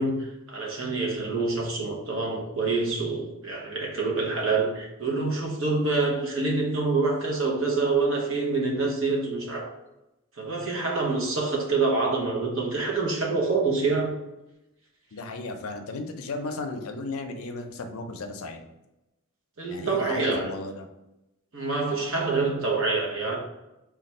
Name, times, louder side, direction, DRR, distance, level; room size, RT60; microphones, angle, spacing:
voice 1, 0.0-9.7 10.4-14.1 19.6-20.5 21.5-23.4, right 3 dB, 65° right, -1 dB, 0.9 m, -26 dB
voice 2, 15.1-18.7 19.7-20.9, left 3 dB, 80° left, 6 dB, 0.5 m, -35 dB
3.3 x 2.3 x 4.1 m, 0.95 s
head